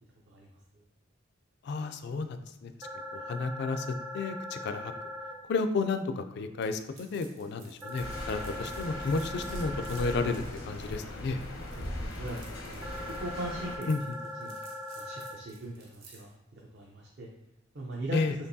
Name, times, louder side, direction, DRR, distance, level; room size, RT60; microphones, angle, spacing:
voice 1, 1.6-2.9 3.1-3.9 4.1-4.9 5.5-11.4 13.9-14.0 18.1-18.3, left 3 dB, 55° left, 9 dB, 0.3 m, -32 dB
sound 1, 2.8-5.3 7.8-10.3 12.8-15.3, left 1 dB, 15° right, 0.5 m, -40 dB
sound 2, 6.6-16.3, right 4 dB, 75° right, 1.0 m, -55 dB
sound 3, 8.0-13.8, left 1 dB, 80° left, 0.8 m, -39 dB
voice 2, 11.7-13.9 14.4-14.6 14.9-17.3 17.7-18.2, right 1 dB, 60° right, -2 dB, 0.6 m, -40 dB
4.4 x 2.9 x 2.7 m, 1.0 s
head